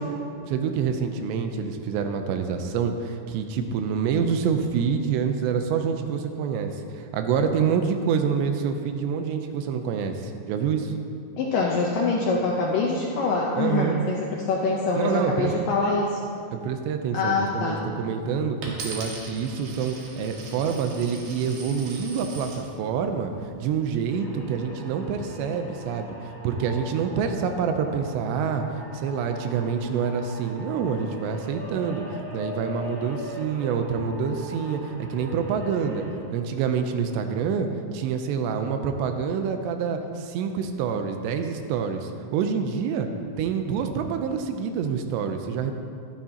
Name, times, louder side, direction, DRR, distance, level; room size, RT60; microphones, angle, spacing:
voice 1, 0.5-10.9 13.6-14.0 15.0-15.5 16.5-23.3 23.6-26.2 26.4-28.6 28.9-36.0 36.3-37.7 37.9-43.1 43.4-45.7, right 6 dB, 85° right, 6 dB, 2.9 m, -27 dB
voice 2, 11.4-16.2 17.1-17.8, left 3 dB, 80° left, -2 dB, 2.0 m, -24 dB
Coin (dropping), 18.6-22.6 23.3-23.8, right 3 dB, 60° right, 3.0 m, -40 dB
sound 1, 24.1-36.1, left 1 dB, 30° right, 2.5 m, -41 dB
13.5 x 12.5 x 2.9 m, 2.4 s
omnidirectional pair, 5.0 m